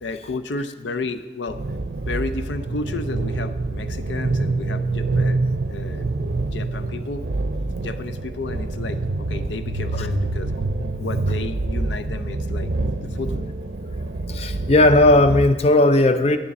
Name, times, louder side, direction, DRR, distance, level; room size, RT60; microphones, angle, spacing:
voice 1, 0.0-1.6 2.1-5.4 5.7-6.1 6.5-7.3 7.8-10.6 11.0-12.7 13.0-13.4, left 3 dB, 90° left, 11 dB, 0.5 m, -32 dB
sound 1, 1.5-15.5, right 2 dB, 65° right, 0.6 m, -26 dB
voice 2, 14.3-16.4, left 2 dB, 35° left, 9 dB, 0.5 m, -16 dB
10.0 x 9.8 x 4.1 m, 1.2 s
head